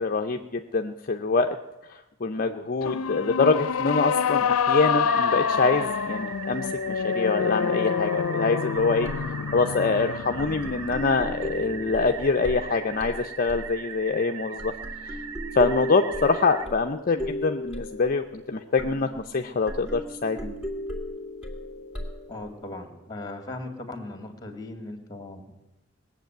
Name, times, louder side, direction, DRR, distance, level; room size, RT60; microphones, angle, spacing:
voice 1, 0.0-1.6 1.9-9.1 9.5-14.7 15.0-15.2 15.5-20.5, left 4 dB, 40° left, 5 dB, 0.6 m, -25 dB
sound 1, 2.8-12.2, left 6 dB, 90° left, 0.5 m, -27 dB
sound 2, 5.1-16.7, right 7 dB, 70° right, 0.8 m, -40 dB
sound 3, 8.8-9.6 10.4-14.3 14.6-22.8, left 1 dB, 5° right, 2.5 m, -37 dB
voice 2, 22.3-25.5, left 2 dB, 20° left, 6 dB, 2.1 m, -38 dB
19.0 x 7.4 x 9.1 m, 0.97 s
head